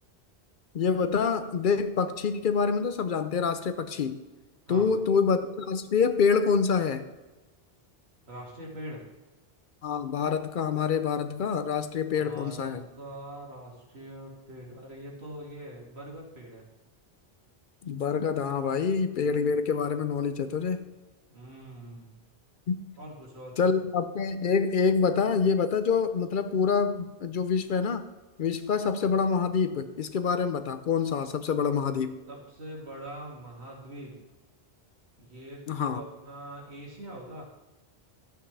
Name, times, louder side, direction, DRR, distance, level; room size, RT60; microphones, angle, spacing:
voice 1, 0.7-4.2 4.7-7.1 9.8-12.8 17.8-20.8 22.7-22.9 23.6-28.1 28.4-32.2 35.7-36.0, left 5 dB, 60° left, 10 dB, 0.7 m, -26 dB
voice 2, 8.3-9.0 12.0-16.6 21.3-22.2 23.0-23.6 32.3-34.2 35.2-37.5, right 1 dB, 85° right, -4 dB, 2.6 m, -43 dB
12.5 x 7.9 x 3.3 m, 1.1 s
omnidirectional pair, 1.1 m